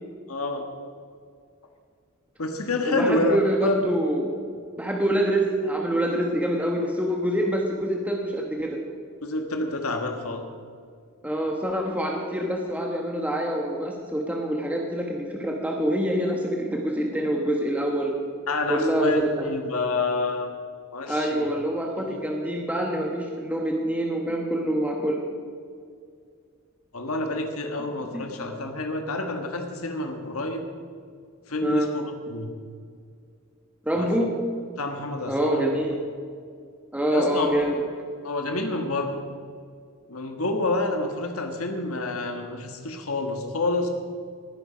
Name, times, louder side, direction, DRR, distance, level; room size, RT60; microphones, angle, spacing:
voice 1, 0.3-0.6 2.4-3.9 9.2-10.4 18.5-20.5 20.9-21.5 22.0-22.2 26.9-30.7 31.5-32.5 33.9-34.1 34.8-35.7 37.1-37.6 38.2-39.2 40.1-43.9, left 2 dB, 85° left, 4 dB, 1.6 m, -28 dB
voice 2, 2.8-4.4 4.8-8.8 11.2-18.1 18.7-19.5 21.1-25.2 28.1-28.2 31.6-31.9 33.8-34.3 35.3-36.0 36.9-37.8, right 1 dB, 5° right, 0 dB, 1.2 m, -26 dB
19.0 x 10.0 x 5.1 m, 2.2 s
head